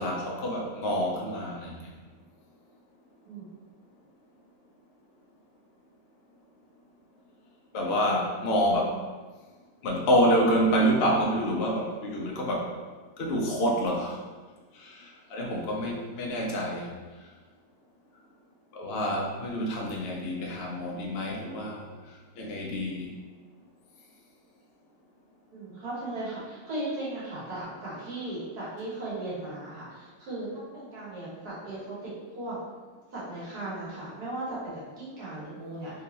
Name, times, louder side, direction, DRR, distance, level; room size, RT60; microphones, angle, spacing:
voice 1, 0.0-1.9 7.7-9.0 9.8-12.7 13.2-14.2 14.7-17.0 18.7-21.8 22.4-23.1, equal, 85° left, -1 dB, 0.5 m, -27 dB
voice 2, 25.5-32.1 32.3-32.6 33.1-35.9, right 1 dB, 60° right, -8 dB, 1.7 m, -37 dB
3.5 x 2.9 x 2.9 m, 1.4 s
omnidirectional pair, 2.0 m